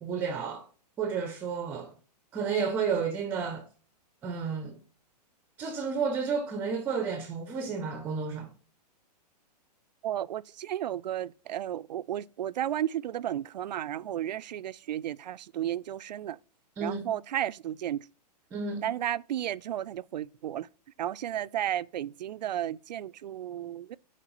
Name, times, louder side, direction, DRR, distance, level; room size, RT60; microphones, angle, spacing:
voice 1, 0.0-0.7 1.0-1.9 2.3-3.6 4.2-4.8 5.6-8.5 16.8-17.1 18.5-18.9, right 5 dB, 10° right, 0.5 m, -31 dB
voice 2, 10.0-16.4 16.8-18.0 18.8-20.7 21.0-24.0, right 11 dB, 85° right, 0.4 m, -33 dB
10.0 x 4.5 x 2.9 m
hypercardioid pair, 155°, 21 cm